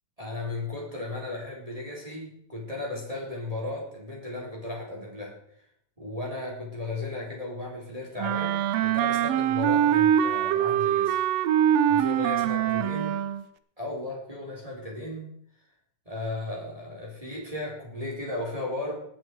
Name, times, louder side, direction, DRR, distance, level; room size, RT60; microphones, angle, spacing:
voice 1, 0.2-5.3 6.0-11.2 11.9-13.2 13.8-15.3 16.1-18.9, left 2 dB, 10° right, -3 dB, 3.8 m, -35 dB
Wind instrument woodwind instrument, 8.2-13.4, right 10 dB, 75° right, 1.6 m, -23 dB
19.5 x 8.9 x 4.7 m, 0.68 s
omnidirectional pair, 3.4 m